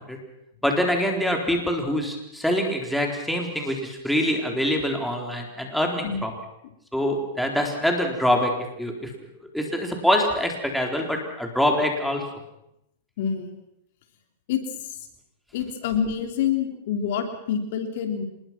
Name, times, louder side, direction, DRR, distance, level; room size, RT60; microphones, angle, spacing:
voice 1, 0.6-6.3 6.9-8.5 8.8-9.1 9.5-12.2, equal, ahead, 1 dB, 4.0 m, -24 dB
voice 2, 13.2-13.5 14.5-15.1 15.5-18.3, left 8 dB, 60° left, 5 dB, 3.5 m, -27 dB
26.0 x 21.0 x 6.1 m, 0.81 s
hypercardioid pair, 140°, 0 cm